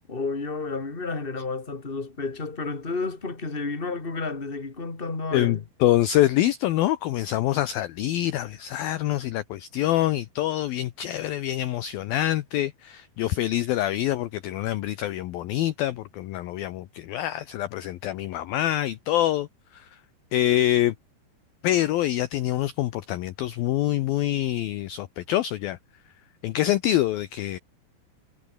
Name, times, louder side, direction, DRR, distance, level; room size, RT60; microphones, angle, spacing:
voice 1, 0.1-5.6, left 3 dB, 15° left, 2.9 m, -31 dB
voice 2, 5.3-19.5 19.7-19.9 20.3-20.9 21.6-25.8 26.4-27.6, left 13 dB, 75° left, 2.2 m, -25 dB
omnidirectional pair, 5.5 m